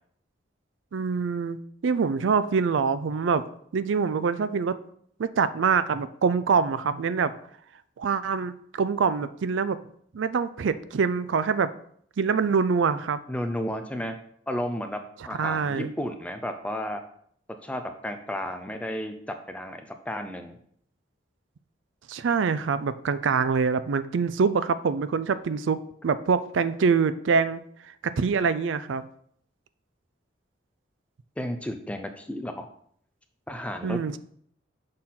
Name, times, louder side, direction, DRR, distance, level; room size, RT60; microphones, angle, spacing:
voice 1, 0.9-3.4 3.7-4.8 5.2-7.3 8.0-9.8 10.1-11.7 12.2-13.2 15.4-15.9 22.1-27.6 28.0-29.0 33.8-34.2, right 5 dB, 80° right, 14 dB, 0.4 m, -25 dB
voice 2, 13.3-14.2 14.5-15.0 15.3-17.0 17.6-20.6 31.4-32.6 33.5-34.0, equal, 5° left, 7 dB, 0.5 m, -33 dB
6.4 x 4.0 x 5.7 m, 0.65 s
head